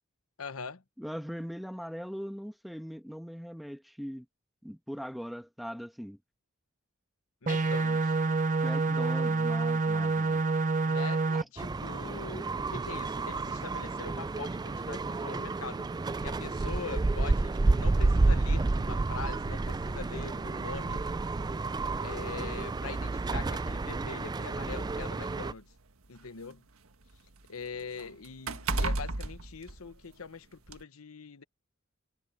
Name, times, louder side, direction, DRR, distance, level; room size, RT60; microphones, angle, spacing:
voice 1, 0.4-0.8 7.4-8.2 10.8-15.9 16.2-21.1 22.0-25.7 26.1-26.6 27.5-31.4, left 5 dB, 85° left, 1.1 m, -43 dB
voice 2, 1.0-4.3 4.6-6.2 8.6-10.4 11.3-11.4, equal, ahead, 1.2 m, -40 dB
sound 1, 7.5-11.4, right 3 dB, 35° right, 0.7 m, -27 dB
sound 2, 11.6-25.5, right 3 dB, 20° right, 0.3 m, -30 dB
sound 3, 21.6-21.8 22.9-23.0 23.4-23.5 24.5-26.5 26.8-30.3 30.7-30.8, right 2 dB, 85° right, 1.5 m, -35 dB
head